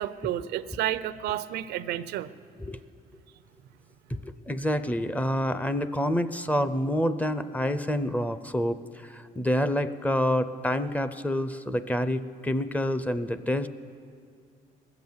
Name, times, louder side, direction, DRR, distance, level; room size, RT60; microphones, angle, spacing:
voice 1, 0.0-2.3, right 12 dB, 80° right, 15 dB, 0.5 m, -31 dB
voice 2, 4.1-13.7, equal, 10° left, 12 dB, 0.4 m, -28 dB
19.5 x 8.0 x 7.1 m, 2.3 s
cardioid pair, 110°, 17 cm